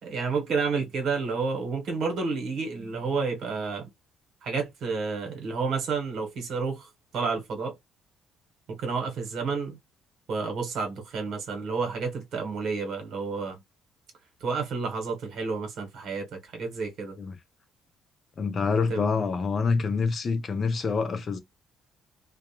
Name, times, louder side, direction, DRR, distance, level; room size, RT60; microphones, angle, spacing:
voice 1, 0.0-3.9 4.4-7.7 8.7-9.8 10.3-13.6 14.4-16.3 16.5-17.2 18.9-19.0, right 4 dB, 70° right, 1.1 m, -30 dB
voice 2, 18.4-21.4, left 4 dB, 45° left, 0.5 m, -26 dB
2.3 x 2.2 x 2.9 m
cardioid pair, 85°, 0 cm